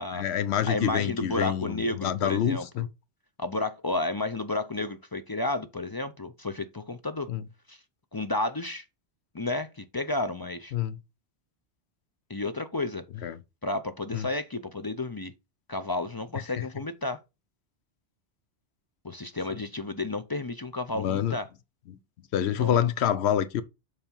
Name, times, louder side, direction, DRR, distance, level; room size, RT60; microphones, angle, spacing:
voice 1, 0.1-2.9 7.3-7.4 10.7-11.0 13.2-13.4 14.1-14.3 16.6-16.7 20.9-21.4 21.9-22.0 22.3-23.6, left 10 dB, 75° left, 0.9 m, -27 dB
voice 2, 0.6-2.9 3.4-7.3 7.7-7.8 8.1-8.8 9.3-10.7 12.3-13.0 13.6-15.3 15.7-17.2 19.0-21.5 22.6-22.8, left 2 dB, 35° left, 0.4 m, -32 dB
7.0 x 3.4 x 5.3 m
omnidirectional pair, 1.1 m